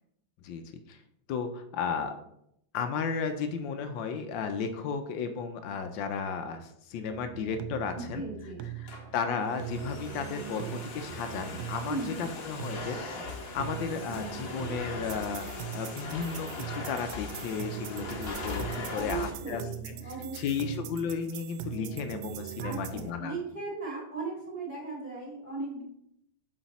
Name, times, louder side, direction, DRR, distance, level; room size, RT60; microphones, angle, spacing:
voice 1, 0.4-1.0 1.3-2.2 2.7-8.2 8.8-13.0 13.5-15.5 15.7-19.9 20.3-23.3, left 6 dB, 80° left, 7 dB, 1.3 m, -34 dB
sound 1, 7.1-23.1, right 9 dB, 85° right, 1.3 m, -41 dB
voice 2, 7.9-8.6 11.9-12.3 18.9-20.9 22.6-25.8, right 3 dB, 25° right, -4 dB, 2.2 m, -37 dB
Domestic sounds home sounds, 8.6-19.3, left 3 dB, 50° left, 0.7 m, -40 dB
7.5 x 4.0 x 4.1 m, 0.75 s
omnidirectional pair, 2.1 m